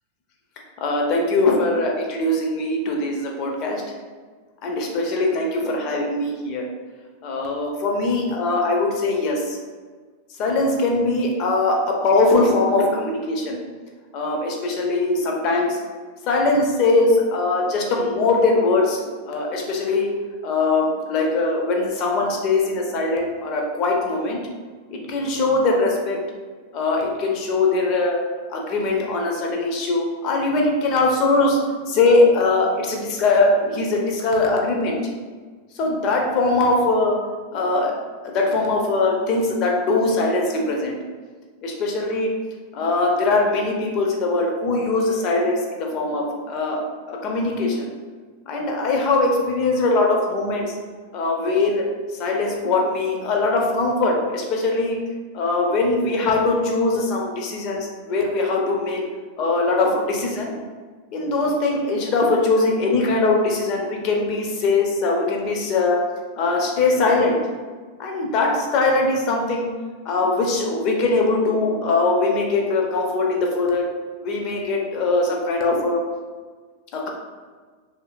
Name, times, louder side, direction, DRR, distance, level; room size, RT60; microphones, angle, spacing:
voice 1, 0.8-3.8 4.6-6.7 7.2-9.6 10.4-13.6 14.1-15.8 16.3-20.1 20.4-24.4 24.9-26.2 26.7-28.2 28.5-31.6 31.9-35.0 35.8-37.2 37.5-37.9 38.3-41.0 41.6-42.3 42.7-46.8 47.1-47.9 48.5-50.7 51.1-51.8 52.2-55.0 55.3-59.0 59.4-60.5 61.1-66.0 66.4-67.4 68.0-69.7 70.0-73.9 74.2-76.0 76.9-77.1, left 3 dB, 40° left, 0 dB, 0.5 m, -21 dB
2.6 x 2.5 x 2.4 m, 1.5 s
figure-of-eight pair, 90°, 0 cm